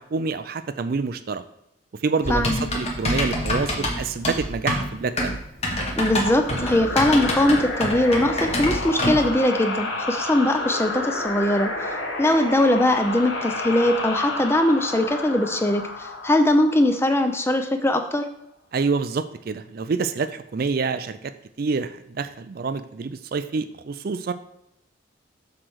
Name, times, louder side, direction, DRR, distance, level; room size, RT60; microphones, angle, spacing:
voice 1, 0.0-1.4 2.0-5.4 18.7-21.3 21.6-24.3, right 4 dB, 50° right, 11 dB, 0.4 m, -27 dB
Typing, 2.2-9.3, left 1 dB, 30° left, 1.2 m, -26 dB
voice 2, 2.3-2.7 6.0-11.9 12.2-18.3, left 1 dB, 10° left, 6 dB, 0.5 m, -21 dB
sound 1, 6.3-17.7, left 2 dB, 70° left, 1.2 m, -31 dB
7.7 x 3.3 x 6.2 m, 0.81 s
head